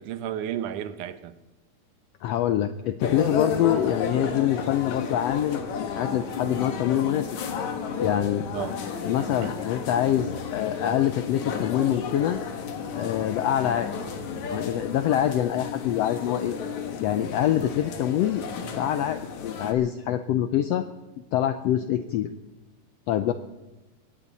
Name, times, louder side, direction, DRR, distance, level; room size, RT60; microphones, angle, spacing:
voice 1, 0.0-1.3 8.5-8.8 9.2-9.5, right 10 dB, 80° right, 12 dB, 2.4 m, -33 dB
voice 2, 2.2-7.4 8.0-8.4 9.0-12.4 12.9-14.0 14.5-16.5 17.0-18.4 18.8-20.9 21.3-22.3 23.1-23.3, left 11 dB, 90° left, 10 dB, 1.4 m, -25 dB
sound 1, 3.0-19.7, left 5 dB, 65° left, 2.8 m, -33 dB
20.5 x 16.5 x 4.1 m, 1.1 s
omnidirectional pair, 3.6 m